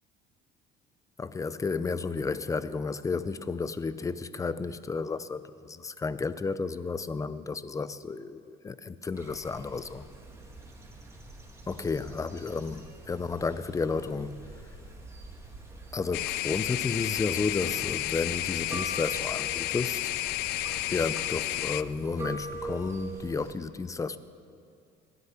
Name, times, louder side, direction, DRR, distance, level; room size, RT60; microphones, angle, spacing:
voice 1, 1.2-10.0 11.7-14.4 15.9-20.1 20.9-24.2, left 4 dB, 20° left, 0.6 m, -32 dB
sound 1, 9.1-23.5, right 2 dB, 15° right, 2.7 m, -44 dB
sound 2, 16.1-21.8, left 17 dB, 80° left, 0.4 m, -31 dB
19.5 x 12.0 x 5.9 m
cardioid pair, 115°, 16 cm